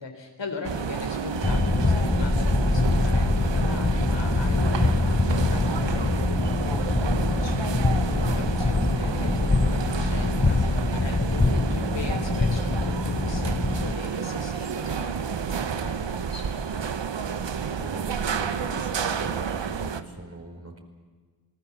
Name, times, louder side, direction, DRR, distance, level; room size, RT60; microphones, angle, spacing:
voice 1, 0.0-16.8, left 4 dB, 70° left, 4 dB, 3.9 m, -39 dB
sound 1, 0.6-20.0, right 6 dB, 75° right, 1.3 m, -30 dB
sound 2, 1.4-13.9, left 3 dB, 25° left, 1.2 m, -24 dB
voice 2, 17.4-20.8, right 2 dB, 35° right, 3 dB, 4.9 m, -42 dB
28.0 x 19.0 x 7.4 m, 1.5 s
cardioid pair, 45°, 44 cm